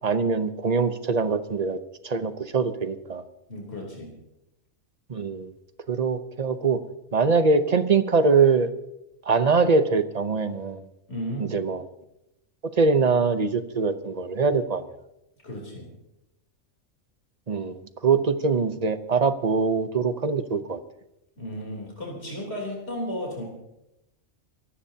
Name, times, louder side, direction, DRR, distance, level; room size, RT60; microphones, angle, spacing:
voice 1, 0.0-1.8 2.0-3.2 5.1-5.5 5.9-6.8 7.1-8.7 9.3-10.8 11.5-11.8 12.6-14.8 17.5-20.8, right 4 dB, 35° right, 11 dB, 0.8 m, -23 dB
voice 2, 3.5-4.1 11.1-11.6 15.4-15.9 21.4-23.4, equal, 50° left, -1 dB, 3.8 m, -34 dB
25.0 x 16.0 x 2.8 m, 0.88 s
omnidirectional pair, 1.4 m